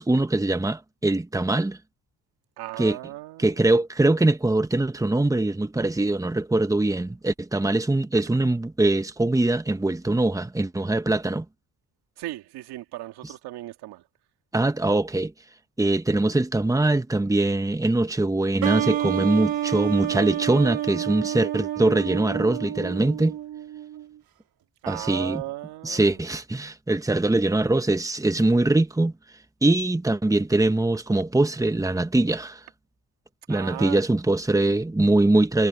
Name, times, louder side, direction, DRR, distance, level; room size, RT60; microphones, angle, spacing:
voice 1, 0.0-1.8 2.8-3.0 3.4-11.4 14.5-15.3 15.8-23.4 24.9-25.4 25.8-29.1 29.6-32.6 33.5-35.7, right 2 dB, 10° right, 1.4 m, -22 dB
voice 2, 2.6-3.7 12.2-14.0 24.8-26.2 33.5-34.0, right 16 dB, 85° right, 2.3 m, -36 dB
sound 1, 18.6-24.1, right 12 dB, 65° right, 2.3 m, -29 dB
cardioid pair, 85°, 38 cm